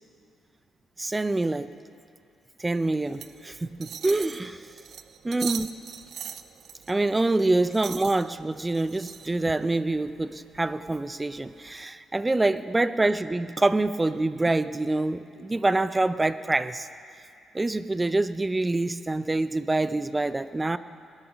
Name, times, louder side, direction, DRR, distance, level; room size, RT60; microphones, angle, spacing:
voice 1, 1.0-1.7 2.6-4.6 5.2-5.7 6.9-16.9 17.5-20.8, right 2 dB, 15° right, 14 dB, 0.5 m, -26 dB
sound 1, 3.1-11.8, right 8 dB, 65° right, 0.5 m, -42 dB
21.0 x 8.1 x 6.1 m, 2.4 s
cardioid pair, 90°, 0 cm